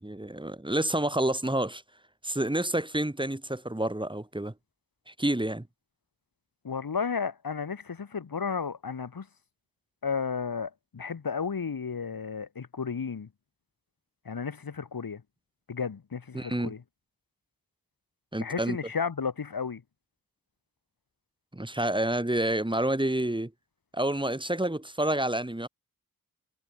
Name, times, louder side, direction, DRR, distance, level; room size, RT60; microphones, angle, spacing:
voice 1, 0.0-1.8 2.2-4.5 5.1-5.6 16.3-16.7 18.3-18.8 21.5-23.5 23.9-25.7, right 1 dB, 15° right, 6.3 m, -28 dB
voice 2, 6.6-9.3 10.0-13.3 14.3-15.2 15.7-16.8 18.4-19.8, left 6 dB, 75° left, 5.4 m, -33 dB
wide cardioid pair, 100°, 35 cm